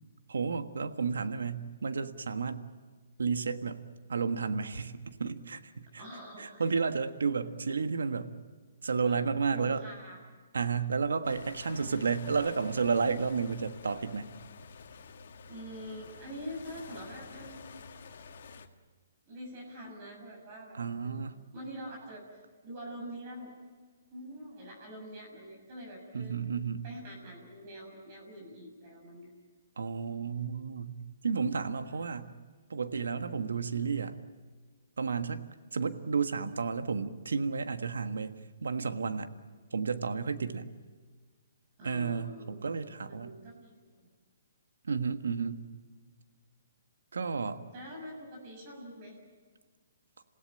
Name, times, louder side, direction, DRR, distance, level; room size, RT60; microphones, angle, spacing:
voice 1, 0.3-2.7 3.2-3.8 4.1-6.0 6.4-8.3 8.8-9.8 10.5-14.3 20.7-21.3 26.1-26.8 29.8-31.0 31.2-32.3 32.7-34.1 35.0-35.4 35.7-39.3 39.7-40.7 41.8-43.3 44.8-45.6 47.1-47.6, right 5 dB, 80° right, 9 dB, 1.5 m, -32 dB
voice 2, 5.9-6.7 9.0-10.2 15.5-17.8 19.3-21.3 21.5-22.2 22.6-23.5 24.1-26.4 26.8-29.3 31.9-32.1 41.8-44.1 47.7-49.2, equal, 40° right, 0 dB, 6.6 m, -45 dB
sound 1, 11.2-18.7, left 5 dB, 60° left, 1.8 m, -49 dB
27.5 x 16.5 x 8.9 m, 1.5 s
hypercardioid pair, 140°, 0 cm